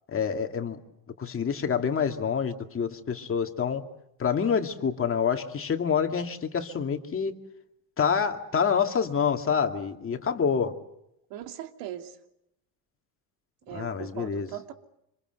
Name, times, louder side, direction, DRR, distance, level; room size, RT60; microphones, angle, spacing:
voice 1, 0.1-0.8 1.2-3.8 4.2-7.3 8.0-10.7 13.7-14.5, left 6 dB, 30° left, 5 dB, 2.4 m, -27 dB
voice 2, 11.3-12.2 13.7-14.7, right 11 dB, 75° right, 5 dB, 2.9 m, -39 dB
27.0 x 27.0 x 8.0 m, 0.81 s
cardioid pair, 125°, 43 cm